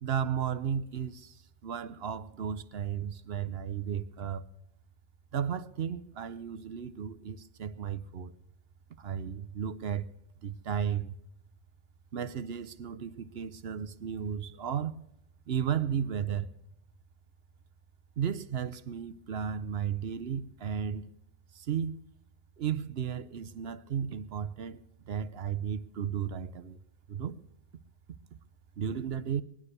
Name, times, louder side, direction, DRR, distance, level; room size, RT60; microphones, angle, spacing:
voice 1, 0.0-1.3 1.6-4.5 5.3-8.3 9.0-10.1 10.4-11.2 12.1-15.0 15.5-16.5 18.2-21.1 21.5-22.0 22.6-24.8 25.1-26.8 27.1-27.4 28.8-29.4, right 8 dB, 55° right, 0.9 m, -34 dB
21.5 x 9.9 x 6.7 m
omnidirectional pair, 1.3 m